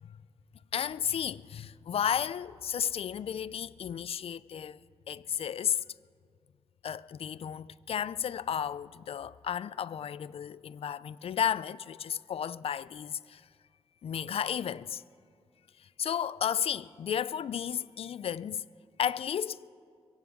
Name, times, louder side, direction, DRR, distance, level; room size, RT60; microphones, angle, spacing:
voice 1, 0.7-4.8 5.1-5.8 6.8-13.4 14.0-15.0 16.0-18.6 19.0-19.7, left 8 dB, 60° left, 0.3 m, -33 dB
23.0 x 16.5 x 3.7 m
cardioid pair, 80°, 11 cm